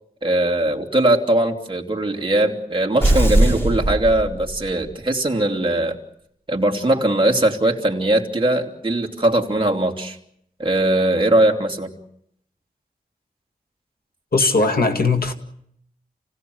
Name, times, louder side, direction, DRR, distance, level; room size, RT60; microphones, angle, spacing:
voice 1, 0.2-6.0 6.5-10.2 10.6-12.0, right 1 dB, 35° right, 3.1 m, -20 dB
sound 1, 3.0-4.9, right 1 dB, 15° left, 5.2 m, -19 dB
voice 2, 14.3-15.3, left 3 dB, 75° left, 2.1 m, -18 dB
29.0 x 17.5 x 8.0 m
wide cardioid pair, 90°, 15 cm